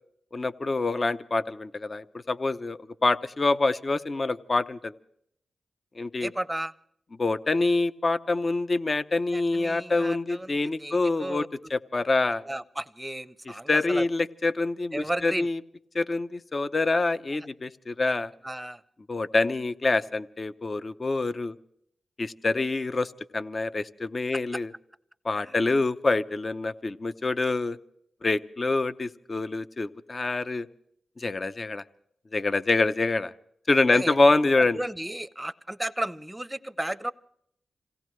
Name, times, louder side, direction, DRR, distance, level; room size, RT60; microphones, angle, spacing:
voice 1, 0.3-4.9 6.0-6.3 7.2-11.4 11.7-12.4 13.7-15.6 15.9-18.3 19.1-21.5 22.2-24.7 25.2-27.8 28.2-30.7 31.2-31.8 32.3-33.3 33.7-34.8, left 3 dB, 40° left, 13 dB, 0.6 m, -26 dB
voice 2, 6.2-6.7 9.3-11.5 12.5-14.1 14.9-15.5 18.4-18.8 25.5-25.6 33.9-34.2 34.7-37.1, right 1 dB, 10° right, 14 dB, 0.7 m, -33 dB
26.5 x 17.0 x 3.1 m, 0.70 s
cardioid pair, 55°, 0 cm